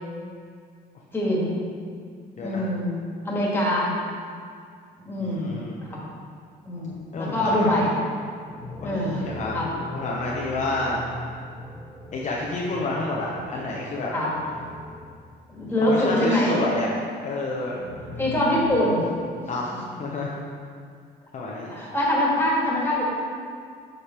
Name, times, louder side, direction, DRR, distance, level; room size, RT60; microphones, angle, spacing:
voice 1, 1.1-1.5 2.4-3.0 3.2-3.9 5.0-5.6 5.8-6.0 6.7-7.9 8.8-9.2 9.5-9.7 14.1-14.3 15.5-16.5 18.2-19.0 21.7-23.0, left 1 dB, 10° left, -5 dB, 1.8 m, -23 dB
voice 2, 2.4-2.7 5.2-5.8 7.1-7.8 8.8-9.6 9.9-11.0 12.1-14.1 15.9-16.9 17.2-17.7 19.5-19.7 20.0-20.4 21.3-21.7, left 2 dB, 40° left, -4 dB, 0.7 m, -29 dB
sound 1, 8.3-15.5 17.6-18.7, left 1 dB, 25° right, 1.6 m, -40 dB
6.7 x 5.1 x 4.3 m, 2.1 s
cardioid pair, 130°, 18 cm